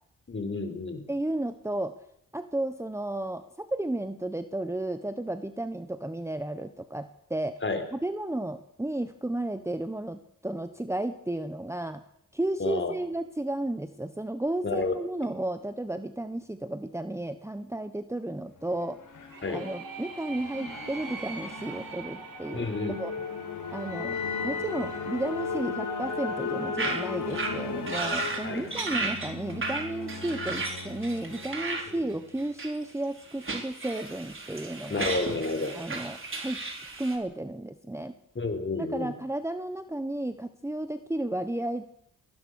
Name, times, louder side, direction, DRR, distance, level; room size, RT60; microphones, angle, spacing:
voice 1, 0.3-1.0 7.6-7.8 12.6-12.9 14.6-14.9 19.4-19.6 22.5-22.9 28.4-28.7 31.9-32.0 34.9-35.7 38.3-39.1, left 3 dB, 35° left, 7 dB, 4.5 m, -30 dB
voice 2, 1.1-1.9 2.3-7.6 7.9-12.0 12.3-19.0 19.5-23.1 23.7-24.1 24.4-35.1 35.7-36.6 37.0-38.1 38.8-41.8, right 1 dB, 10° right, 9 dB, 1.2 m, -33 dB
sound 1, 18.5-32.2, left 4 dB, 65° left, 5.0 m, -36 dB
sound 2, 19.3-24.9, right 5 dB, 80° right, 3.5 m, -45 dB
sound 3, 26.8-27.0 27.3-27.5 27.9-28.4 28.7-31.8 32.4-32.8 33.3-37.2, right 3 dB, 35° right, 4.5 m, -34 dB
21.5 x 19.0 x 6.5 m, 0.73 s
cardioid pair, 70°, 33 cm